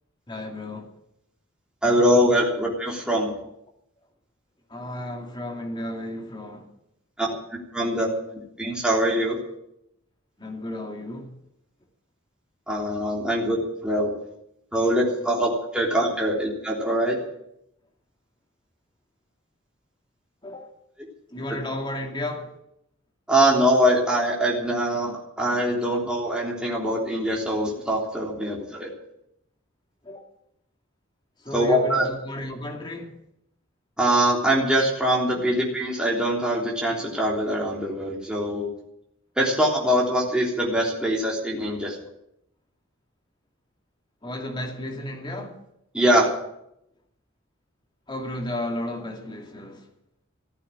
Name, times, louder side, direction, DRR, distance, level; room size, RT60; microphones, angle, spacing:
voice 1, 0.3-0.9 4.7-6.7 7.3-7.4 7.8-7.9 10.4-11.3 13.3-13.4 20.4-20.7 21.3-22.5 30.0-30.2 31.4-33.1 35.4-35.6 44.2-45.6 48.1-49.8, left 1 dB, 25° left, 2.5 m, -33 dB
voice 2, 1.8-3.3 7.2-7.3 7.7-8.1 8.6-9.4 12.7-13.6 13.8-14.1 14.7-17.2 23.3-28.9 31.5-32.1 34.0-38.7 39.4-42.0 45.9-46.3, equal, 5° right, 3.4 m, -23 dB
15.5 x 9.0 x 9.9 m
head